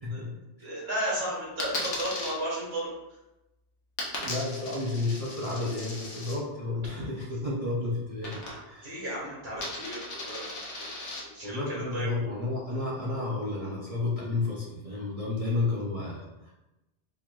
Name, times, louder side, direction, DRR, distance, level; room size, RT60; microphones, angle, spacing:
voice 1, 0.0-0.3 0.6-0.8 4.2-9.0 11.4-16.5, left 2 dB, 45° right, -5 dB, 0.5 m, -32 dB
voice 2, 0.6-2.9 8.8-10.6 11.3-12.3, right 1 dB, 60° right, -6 dB, 1.7 m, -34 dB
Coin (dropping), 1.6-2.3 4.0-6.4 8.2-8.9 9.1-11.2, left 2 dB, 80° left, 1.1 m, -37 dB
4.3 x 3.0 x 2.3 m, 0.97 s
omnidirectional pair, 1.2 m